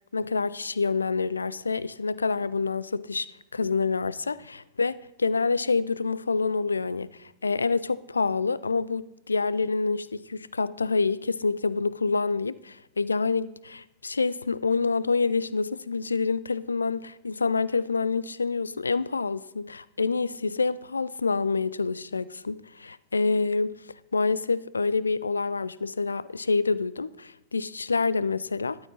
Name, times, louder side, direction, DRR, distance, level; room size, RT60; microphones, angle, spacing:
voice 1, 0.1-3.3 3.5-23.8 24.1-28.8, left 4 dB, 75° left, 0.3 m, -27 dB
12.5 x 9.4 x 4.1 m
figure-of-eight pair, 90°, 0 cm